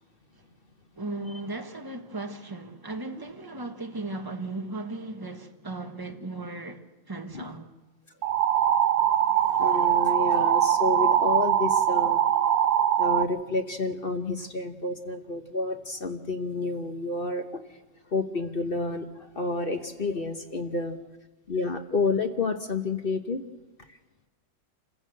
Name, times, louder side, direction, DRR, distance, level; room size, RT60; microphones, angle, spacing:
voice 1, 0.9-7.7, right 2 dB, 15° right, 1.2 m, -36 dB
sound 1, 8.2-13.2, right 10 dB, 75° right, 1.5 m, -22 dB
voice 2, 8.7-12.2 13.0-17.8 18.1-21.0 21.5-23.4 23.8-24.0, left 3 dB, 40° left, 1.0 m, -30 dB
26.5 x 15.5 x 7.8 m
omnidirectional pair, 2.0 m